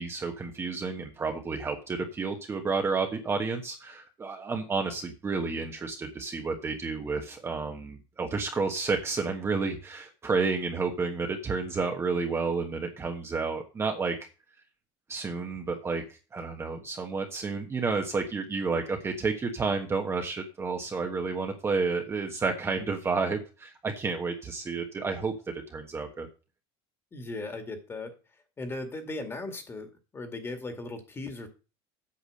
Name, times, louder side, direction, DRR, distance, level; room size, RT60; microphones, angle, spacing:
voice 1, 0.0-14.2 15.1-25.3 25.7-26.3, right 4 dB, 20° right, 3 dB, 1.3 m, -31 dB
voice 2, 27.1-28.1 28.6-31.5, left 2 dB, 20° left, 7 dB, 2.1 m, -37 dB
8.6 x 6.0 x 6.5 m, 0.32 s
supercardioid pair, 135°, 13 cm